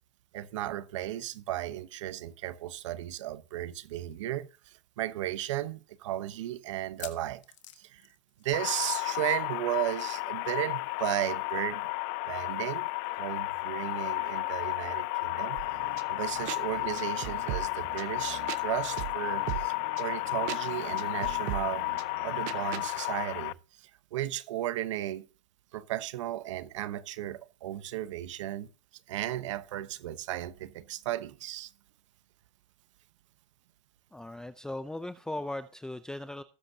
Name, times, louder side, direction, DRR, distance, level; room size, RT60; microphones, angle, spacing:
voice 1, 0.3-7.4 7.8-8.0 8.4-11.9 12.3-15.6 16.1-21.9 22.2-25.3 25.7-28.7 29.1-31.7, right 13 dB, 85° right, 1.0 m, -35 dB
sound 1, 4.1-4.2 4.5-4.6 5.2-5.3 6.8-8.9 9.2-9.4 9.7-9.8 11.2-11.3, left 13 dB, 85° left, 1.6 m, -49 dB
sound 2, 8.5-23.5, left 27 dB, 55° left, 0.5 m, -33 dB
sound 3, 15.6-22.9, right 15 dB, 55° right, 0.9 m, -40 dB
voice 2, 34.1-36.4, left 1 dB, 5° left, 0.5 m, -38 dB
18.5 x 7.8 x 2.8 m
supercardioid pair, 125°, 15 cm